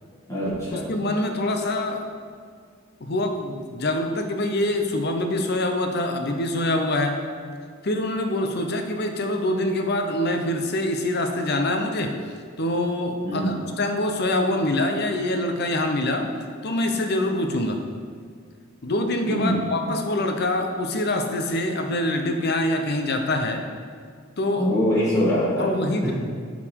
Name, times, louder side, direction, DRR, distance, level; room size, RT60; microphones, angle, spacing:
voice 1, 0.3-0.8 13.2-13.6 19.3-19.7 24.5-25.7, equal, 15° left, -10 dB, 1.8 m, -23 dB
voice 2, 0.9-2.1 3.0-7.2 7.8-12.1 12.6-16.3 16.6-17.8 18.8-23.7 24.4-24.7 25.6-26.1, left 1 dB, 50° left, 5 dB, 0.7 m, -25 dB
9.8 x 4.1 x 4.6 m, 2.1 s
head